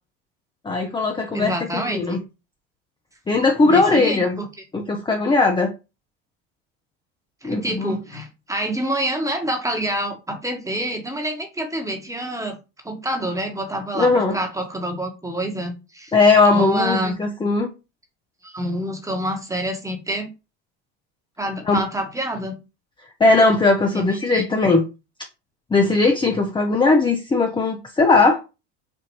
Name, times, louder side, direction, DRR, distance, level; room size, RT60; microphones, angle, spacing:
voice 1, 0.6-2.2 3.3-4.4 4.7-5.7 7.4-8.0 13.9-14.4 16.1-17.7 21.7-21.8 23.2-24.8 25.7-28.4, left 3 dB, 15° left, 3 dB, 0.6 m, -18 dB
voice 2, 1.3-2.2 3.6-4.5 7.4-12.6 12.8-16.1 16.5-17.2 18.4-20.3 21.4-22.6 23.9-24.4, right 1 dB, 10° right, 3 dB, 1.2 m, -27 dB
4.3 x 2.5 x 3.0 m, 0.28 s
hypercardioid pair, 80°, 36 cm